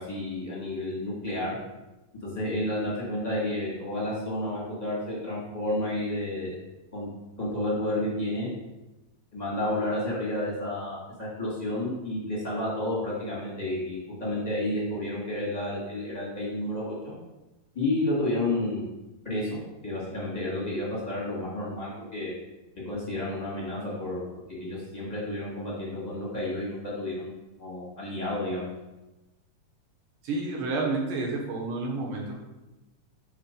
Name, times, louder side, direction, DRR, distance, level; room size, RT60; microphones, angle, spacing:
voice 1, 0.0-1.5 2.2-6.5 6.9-7.1 7.4-8.5 9.3-17.1 17.7-18.8 19.2-22.3 22.8-24.2 24.5-27.3 27.6-28.7, left 1 dB, 25° left, -7 dB, 0.8 m, -31 dB
voice 2, 30.2-32.5, right 3 dB, 70° right, -1 dB, 2.6 m, -30 dB
5.6 x 4.4 x 5.1 m, 1.0 s
omnidirectional pair, 4.1 m